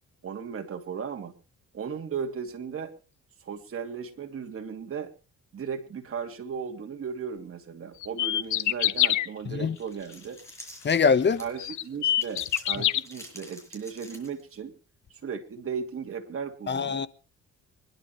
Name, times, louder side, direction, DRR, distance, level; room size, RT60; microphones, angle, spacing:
voice 1, 0.2-1.3 1.7-2.9 3.4-5.1 5.5-10.4 11.4-14.7 15.1-17.1, right 6 dB, 45° right, 2.8 m, -36 dB
sound 1, 8.0-9.3 10.9-11.0 11.6-13.0, left 12 dB, 75° left, 0.9 m, -24 dB
sound 2, 9.8-11.7 12.1-14.6, equal, 10° left, 6.3 m, -47 dB
voice 2, 10.8-11.4 16.7-17.1, left 5 dB, 35° left, 1.1 m, -23 dB
25.0 x 11.5 x 3.2 m
cardioid pair, 90°, 30 cm